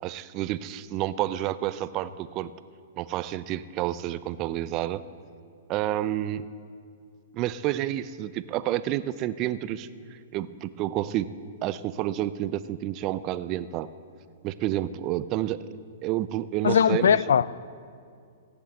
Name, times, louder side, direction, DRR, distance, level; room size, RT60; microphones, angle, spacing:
voice 1, 0.0-2.5 3.0-5.0 5.7-6.5 7.3-9.9 10.3-11.3 11.6-13.9 14.4-15.7 16.0-17.2, right 13 dB, 30° right, 0.4 m, -29 dB
voice 2, 16.6-17.5, left 7 dB, 85° left, 0.4 m, -20 dB
15.5 x 8.1 x 7.7 m
hypercardioid pair, 160°, 0 cm